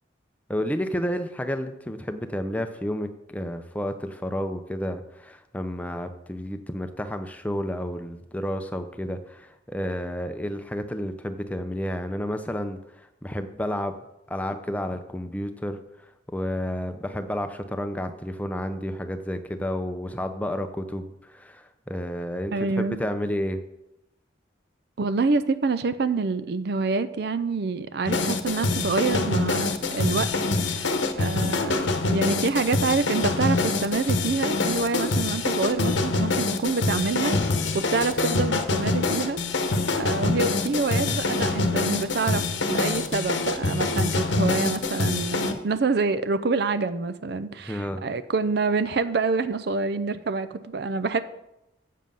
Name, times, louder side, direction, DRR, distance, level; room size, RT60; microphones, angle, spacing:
voice 1, 0.5-12.8 13.2-13.9 14.3-15.8 16.3-23.6 47.7-48.0, equal, 10° left, 8 dB, 0.6 m, -31 dB
voice 2, 22.5-23.1 25.0-30.3 30.7-39.4 39.9-51.2, right 4 dB, 55° right, 13 dB, 0.5 m, -27 dB
sound 1, 28.1-45.5, left 3 dB, 75° left, 0.9 m, -25 dB
7.5 x 7.3 x 5.5 m, 0.88 s
head